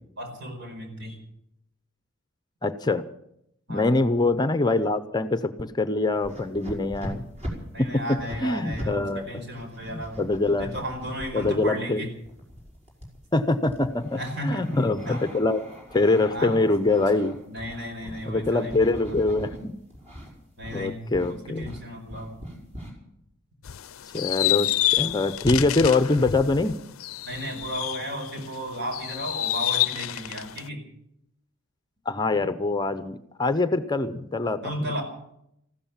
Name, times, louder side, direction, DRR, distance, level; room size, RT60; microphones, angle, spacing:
voice 1, 0.2-1.2 3.7-4.0 7.7-10.2 10.6-12.1 14.2-14.8 15.1-15.2 16.3-16.6 17.5-19.2 20.6-21.0 21.3-22.4 27.2-30.8 34.6-35.0, equal, 55° right, 4 dB, 4.8 m, -34 dB
voice 2, 2.6-3.0 3.7-7.2 7.8-8.0 8.4-9.4 9.8-10.7 11.3-12.0 13.3-15.6 15.9-17.4 18.0-19.7 20.7-21.6 24.1-26.8 32.1-34.9, left 2 dB, 20° left, 11 dB, 0.6 m, -24 dB
sound 1, 6.1-8.9 9.2-11.5 12.2-19.6 19.9-20.3 20.6-20.9 21.1-22.9, equal, 35° right, 5.2 m, -40 dB
sound 2, 23.6-28.5 28.9-30.7, left 14 dB, 80° left, 0.5 m, -28 dB
15.0 x 13.0 x 7.1 m, 0.77 s
head